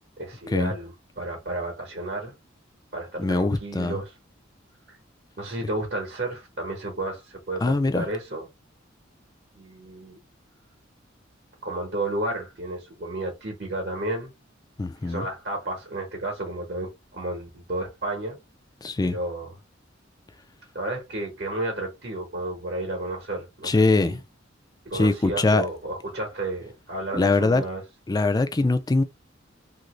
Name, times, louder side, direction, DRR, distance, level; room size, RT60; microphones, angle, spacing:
voice 1, 0.2-2.3 2.9-4.1 4.9-5.0 5.4-8.5 9.5-10.2 11.6-14.3 15.0-18.4 19.0-19.5 20.7-24.2 24.8-27.8, right 2 dB, 55° right, 1.0 m, -32 dB
voice 2, 3.2-4.0 7.6-8.1 14.8-15.3 18.8-19.2 23.6-24.2 24.9-25.7 27.1-27.6 28.1-29.0, left 3 dB, 20° left, 0.3 m, -22 dB
2.9 x 2.6 x 3.0 m
head